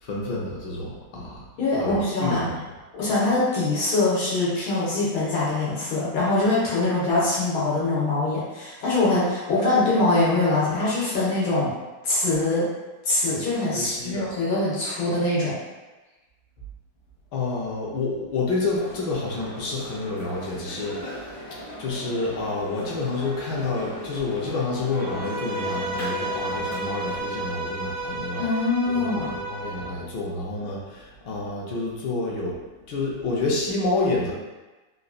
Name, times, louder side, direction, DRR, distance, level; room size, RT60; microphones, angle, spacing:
voice 1, 0.0-1.4 1.8-2.5 13.7-14.3 17.3-21.3 21.8-28.4 28.9-32.6 32.9-34.3, left 3 dB, 65° left, -4 dB, 1.2 m, -29 dB
voice 2, 1.6-2.5 2.9-11.7 12.0-12.6 13.1-15.6 28.4-29.3, left 2 dB, 85° left, -8 dB, 1.9 m, -23 dB
sound 1, 18.7-27.2, left 1 dB, 50° left, 0.9 m, -38 dB
Bowed string instrument, 25.0-30.0, right 1 dB, 80° right, 1.4 m, -32 dB
4.0 x 2.5 x 2.4 m, 1.2 s
omnidirectional pair, 2.2 m